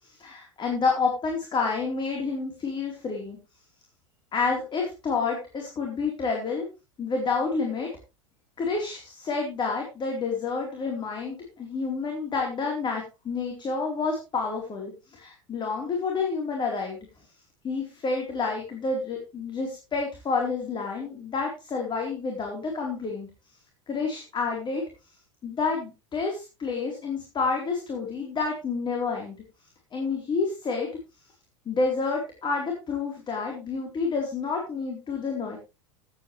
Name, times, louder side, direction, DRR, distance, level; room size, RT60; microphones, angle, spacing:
voice 1, 0.1-3.4 4.3-6.7 7.0-7.9 8.6-17.0 17.6-23.3 23.9-24.9 25.4-29.4 29.9-30.9 31.7-35.6, left 4 dB, 30° left, 1 dB, 4.2 m, -29 dB
16.5 x 9.4 x 3.4 m, 0.28 s
hypercardioid pair, 90°, 17 cm